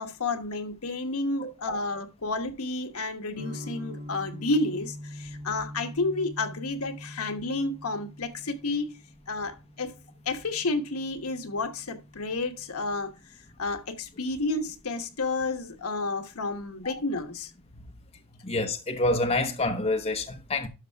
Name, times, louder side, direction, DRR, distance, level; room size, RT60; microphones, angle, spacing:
voice 1, 0.0-8.9 9.3-9.9 10.2-13.1 13.6-17.5, left 3 dB, 75° left, 1.2 m, -31 dB
voice 2, 1.4-1.9 16.8-16.9 18.4-20.7, left 2 dB, 30° left, 0.9 m, -28 dB
sound 1, 3.3-13.1, equal, 85° right, 2.0 m, -44 dB
12.0 x 5.5 x 3.4 m
head